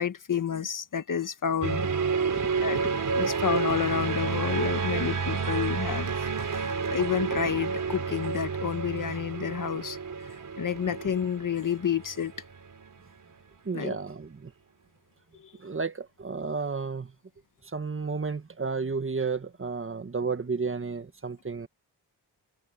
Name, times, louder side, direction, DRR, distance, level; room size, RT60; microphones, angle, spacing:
voice 1, 0.0-1.9 2.6-2.8 3.1-6.1 6.4-10.0 10.6-12.3 13.7-14.0, left 8 dB, 50° left, 1.4 m, -29 dB
sound 1, 1.6-13.0, right 5 dB, 50° right, 5.3 m, -30 dB
voice 2, 2.3-3.3 13.6-14.5 15.6-17.1 17.7-21.7, right 4 dB, 30° right, 1.5 m, -32 dB
cardioid pair, 100°, 41 cm